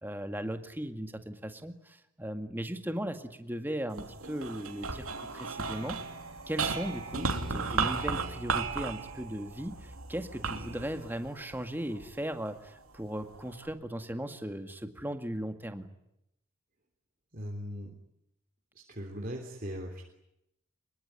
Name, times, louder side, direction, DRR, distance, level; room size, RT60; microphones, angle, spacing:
voice 1, 0.0-6.0 6.5-15.9, equal, 10° right, 7 dB, 2.0 m, -37 dB
sound 1, 3.9-12.4 13.0-13.7, right 4 dB, 80° right, 3.0 m, -35 dB
voice 2, 17.3-17.9 18.9-20.0, equal, 40° right, 1 dB, 3.3 m, -39 dB
25.0 x 22.0 x 9.7 m, 0.83 s
head